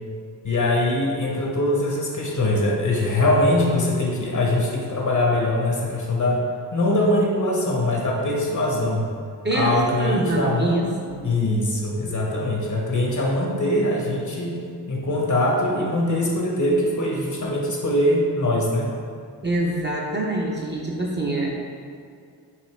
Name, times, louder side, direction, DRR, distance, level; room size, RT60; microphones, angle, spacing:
voice 1, 0.4-6.4 6.7-9.1 9.5-10.8 11.2-14.6 14.9-18.9, left 1 dB, 40° left, -1 dB, 0.9 m, -22 dB
voice 2, 9.4-11.2 19.4-21.5, right 2 dB, 25° right, -3 dB, 0.7 m, -25 dB
4.9 x 2.7 x 3.2 m, 2.3 s
cardioid pair, 50°, 44 cm